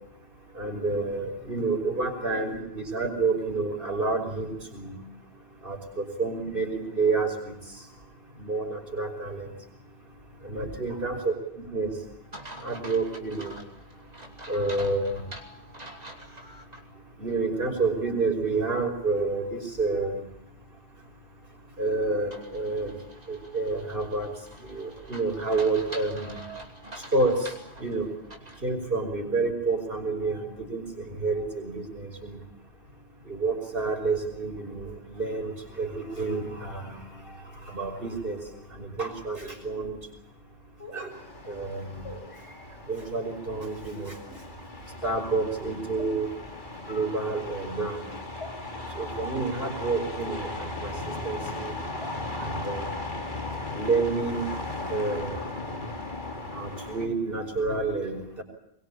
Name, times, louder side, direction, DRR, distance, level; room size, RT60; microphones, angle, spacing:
voice 1, 0.6-5.0 5.6-7.6 8.4-9.5 10.4-11.9 12.6-13.5 14.5-15.1 17.2-20.2 21.8-22.9 23.3-24.3 24.6-26.4 27.1-27.4 27.8-28.1 28.6-32.4 33.3-37.0 37.7-38.4 38.7-40.0 40.9-41.1 41.5-42.0 42.9-44.1 45.0-46.3 46.9-48.1 49.0-51.7 52.4-52.9 53.7-54.5 54.9-55.4 56.6-58.4, right 3 dB, 55° right, 3 dB, 6.0 m, -29 dB
sound 1, 12.3-16.8 17.3-17.4 22.3-28.7, right 1 dB, 40° right, 3.0 m, -45 dB
sound 2, 38.3-38.4 39.3-39.4 40.8-41.0 42.0-42.2 43.0-43.2 44.2-44.4 45.0-45.2 46.0-46.1 46.7-46.9 47.6-47.7 48.4-48.5 49.2-49.3 50.2-50.3 51.1-51.2 52.0-52.1 52.6-52.7, left 2 dB, 85° left, 6.5 m, -43 dB
sound 3, 41.1-57.1, left 2 dB, 45° left, 3.1 m, -37 dB
23.0 x 22.5 x 8.6 m, 0.77 s
omnidirectional pair, 1.1 m